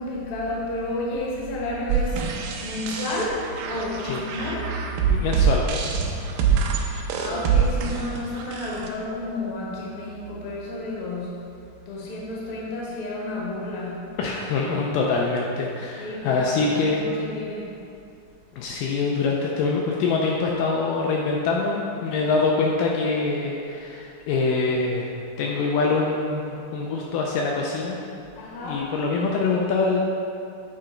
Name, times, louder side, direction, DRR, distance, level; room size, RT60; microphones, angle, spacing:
voice 1, 0.0-5.2 6.7-11.5 11.8-14.1 16.0-17.8 28.4-28.9, left 1 dB, 65° left, -5 dB, 1.3 m, -31 dB
sound 1, 1.9-8.9, right 6 dB, 80° right, 2.0 m, -25 dB
voice 2, 5.1-5.6 14.2-17.0 18.6-25.1 25.4-28.0 28.6-30.0, left 4 dB, 85° left, -1 dB, 1.9 m, -24 dB
8.8 x 3.8 x 4.5 m, 2.5 s
omnidirectional pair, 4.5 m